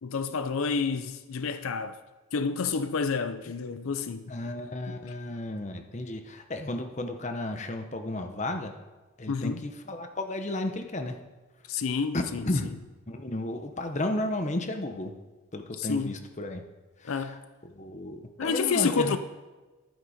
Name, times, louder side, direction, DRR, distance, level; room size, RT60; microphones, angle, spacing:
voice 1, 0.0-2.0 2.3-4.2 4.9-5.0 9.3-9.7 11.7-12.4 15.7-16.2 17.0-17.4 18.4-19.2, left 5 dB, 80° left, 0.5 m, -29 dB
voice 2, 4.3-8.7 9.2-11.2 12.1-12.7 13.1-15.1 15.5-16.6 17.0-17.4 17.6-19.2, left 1 dB, 35° left, 0.9 m, -33 dB
11.5 x 9.5 x 5.0 m
head